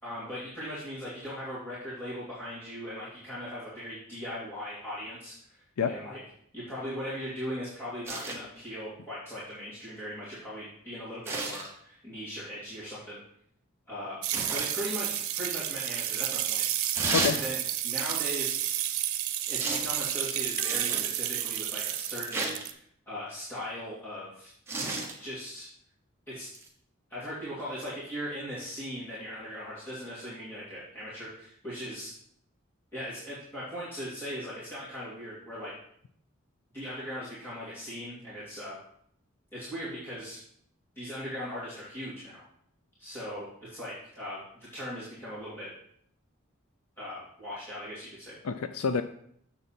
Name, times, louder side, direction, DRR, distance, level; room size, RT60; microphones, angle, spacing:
voice 1, 0.0-5.6 5.8-6.2 6.5-13.2 13.9-14.2 14.5-16.6 17.3-17.6 17.8-18.6 19.5-24.5 25.2-25.7 26.3-26.5 27.1-32.1 32.9-35.7 36.7-38.8 39.5-40.4 41.0-42.5 43.0-45.7 47.0-48.4, equal, 10° left, -11 dB, 2.7 m, -39 dB
sound 1, 8.0-8.4 11.2-11.7 14.3-14.7 16.9-17.4 19.6-19.9 20.7-21.1 22.3-22.6 24.7-25.1 26.5-26.7, right 2 dB, 10° right, 1.1 m, -32 dB
sound 2, 14.2-22.7, right 12 dB, 85° right, 0.7 m, -31 dB
voice 2, 20.6-21.0 48.4-49.0, left 6 dB, 85° left, 11 dB, 0.5 m, -29 dB
7.1 x 6.8 x 4.3 m, 0.66 s
head